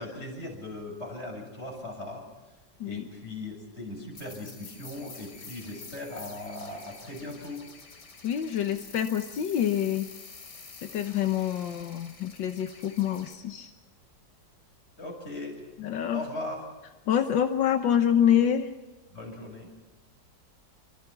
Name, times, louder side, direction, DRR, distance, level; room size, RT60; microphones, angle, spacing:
voice 1, 0.0-2.3 2.8-7.6 15.0-15.6 16.1-16.6 19.1-19.7, left 2 dB, 35° left, 1 dB, 7.4 m, -38 dB
sound 1, 4.1-13.3, left 4 dB, 65° left, 3.1 m, -48 dB
voice 2, 8.2-10.1 10.8-13.7 15.8-16.2 17.1-18.7, left 9 dB, 85° left, 7 dB, 1.8 m, -26 dB
27.0 x 25.0 x 6.0 m, 1.1 s
omnidirectional pair, 2.0 m